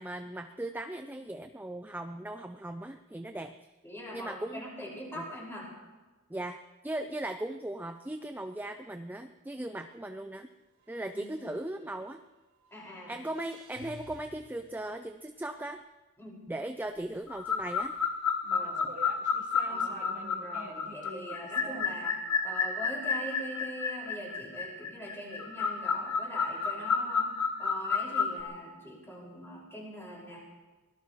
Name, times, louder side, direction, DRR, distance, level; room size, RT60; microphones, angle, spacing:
voice 1, 0.0-3.5 4.1-4.6 5.1-5.2 6.3-10.5 10.9-12.2 13.1-15.8 16.5-17.9, right 1 dB, 10° right, 8 dB, 0.4 m, -38 dB
voice 2, 3.8-5.7 11.1-11.2 12.7-13.2 16.2-16.4 18.5-18.9 19.6-22.1 22.4-27.3 27.6-30.4, equal, 10° left, -3 dB, 5.5 m, -42 dB
sound 1, 8.2-8.5 8.9-9.0 10.8-12.3 12.6-15.6, equal, 75° right, 3.9 m, -55 dB
sound 2, 16.9-18.1 18.4-22.1, right 2 dB, 35° right, 1.4 m, -48 dB
sound 3, 17.3-28.4, left 5 dB, 75° left, 2.0 m, -31 dB
24.5 x 18.0 x 3.2 m, 1.2 s
head